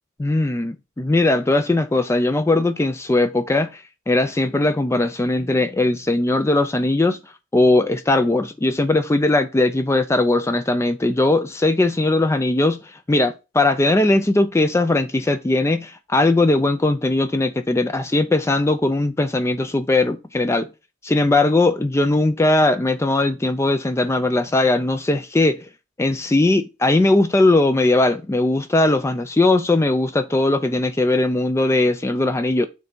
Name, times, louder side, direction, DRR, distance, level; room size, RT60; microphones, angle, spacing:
voice 1, 0.2-7.2 7.5-20.7 21.0-25.7 26.0-32.7, left 2 dB, 15° left, 0.3 m, -19 dB
6.5 x 3.4 x 5.2 m
head